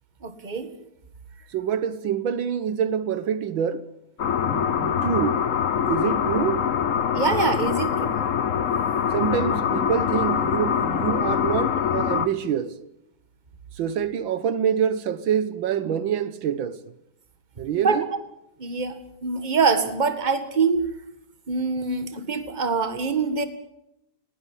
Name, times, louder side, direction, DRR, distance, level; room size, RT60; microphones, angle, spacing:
voice 1, 0.2-0.7 7.1-8.1 17.7-18.0 18.6-20.9 21.5-23.4, right 4 dB, 25° right, 1.8 m, -24 dB
voice 2, 1.5-3.9 4.4-5.5 5.9-6.7 9.1-12.8 13.8-16.8 17.6-18.1, right 8 dB, 80° right, 1.8 m, -26 dB
sound 1, 4.2-12.3, left 8 dB, 50° left, 1.1 m, -24 dB
19.0 x 18.0 x 9.9 m
omnidirectional pair, 2.1 m